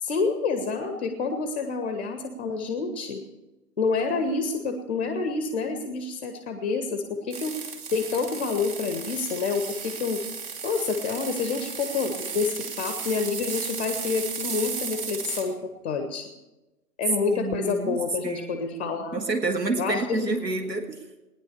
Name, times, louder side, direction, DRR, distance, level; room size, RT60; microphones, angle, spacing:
voice 1, 0.0-3.2 3.8-7.6 7.9-10.2 10.6-16.3 17.0-19.2 19.8-20.3, left 4 dB, 5° left, 6 dB, 0.6 m, -28 dB
sound 1, 7.3-15.5, right 5 dB, 35° right, 2.6 m, -35 dB
voice 2, 17.3-21.0, right 3 dB, 85° right, 6 dB, 1.8 m, -29 dB
18.5 x 10.5 x 6.9 m, 1.1 s
figure-of-eight pair, 140°, 49 cm